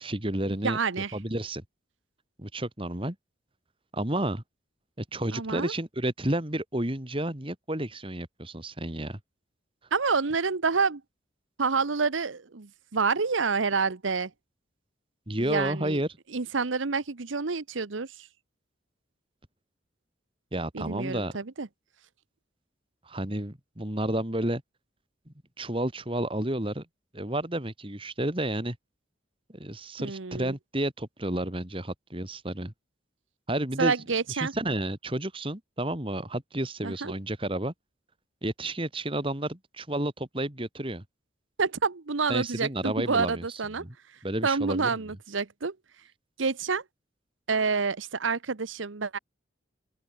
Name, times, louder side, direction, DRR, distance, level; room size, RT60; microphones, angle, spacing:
voice 1, 0.0-0.8 1.1-1.6 2.4-3.2 3.9-4.4 5.0-9.2 15.3-16.1 20.5-21.4 23.1-24.6 25.6-26.9 27.1-28.8 29.5-32.7 33.5-33.9 34.3-37.7 38.4-41.0 42.3-43.4 43.8-43.9 44.2-44.9, right 1 dB, 25° right, 2.6 m, -31 dB
voice 2, 0.6-1.2 5.3-5.7 9.9-11.0 11.6-14.3 15.4-16.0 16.3-18.3 20.7-21.7 30.0-30.5 33.8-34.5 36.8-37.1 41.6-43.8 44.4-45.7 46.4-46.8 47.5-49.2, right 4 dB, 85° right, 1.0 m, -28 dB
open air
head